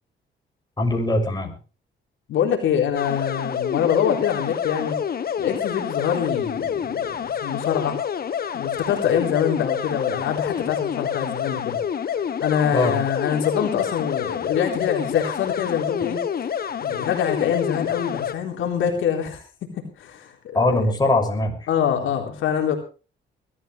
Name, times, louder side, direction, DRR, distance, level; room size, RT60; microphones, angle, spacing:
voice 1, 0.8-1.5 12.7-13.0 20.5-21.7, left 2 dB, 20° left, 2 dB, 6.4 m, -21 dB
voice 2, 2.3-5.0 5.4-8.0 8.5-11.8 12.1-16.2 16.8-19.4 20.0-20.6 21.7-22.8, left 8 dB, 80° left, 2 dB, 3.9 m, -24 dB
sound 1, 2.9-18.3, left 8 dB, 50° left, 1.5 m, -28 dB
21.5 x 14.0 x 3.4 m, 0.35 s
cardioid pair, 90°, 20 cm